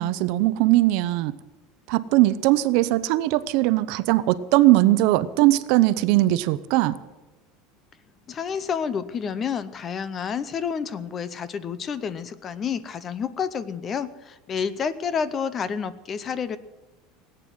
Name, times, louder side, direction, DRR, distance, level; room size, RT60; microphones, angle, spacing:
voice 1, 0.0-1.3 1.9-7.0, right 16 dB, 55° right, 15 dB, 0.7 m, -20 dB
voice 2, 8.3-16.6, left 6 dB, 20° left, 16 dB, 0.6 m, -29 dB
18.0 x 9.2 x 7.8 m, 1.1 s
cardioid pair, 170°, 0 cm